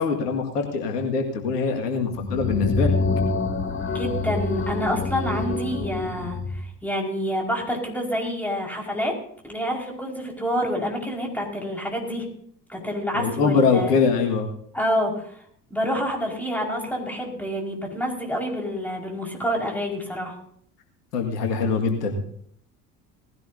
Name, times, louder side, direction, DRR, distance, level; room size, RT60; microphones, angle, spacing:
voice 1, 0.0-2.9 13.1-14.5 21.1-22.2, left 5 dB, 75° left, 3 dB, 2.1 m, -23 dB
sound 1, 2.1-6.7, left 3 dB, 25° left, 2.1 m, -26 dB
voice 2, 3.9-9.2 9.4-12.3 12.7-13.9 14.7-15.2 15.7-20.3, equal, 5° left, 0 dB, 5.2 m, -28 dB
19.0 x 16.0 x 2.8 m, 0.65 s
figure-of-eight pair, 65°, 48 cm